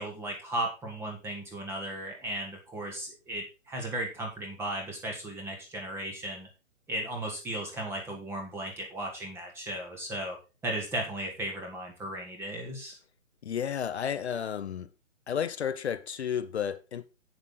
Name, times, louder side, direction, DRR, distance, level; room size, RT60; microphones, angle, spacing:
voice 1, 0.0-6.5 6.9-10.4 10.6-13.0, right 1 dB, 5° right, 1.3 m, -36 dB
voice 2, 13.4-14.9 15.3-17.0, left 8 dB, 55° left, 0.8 m, -32 dB
8.2 x 7.5 x 3.9 m
hypercardioid pair, 150°, 39 cm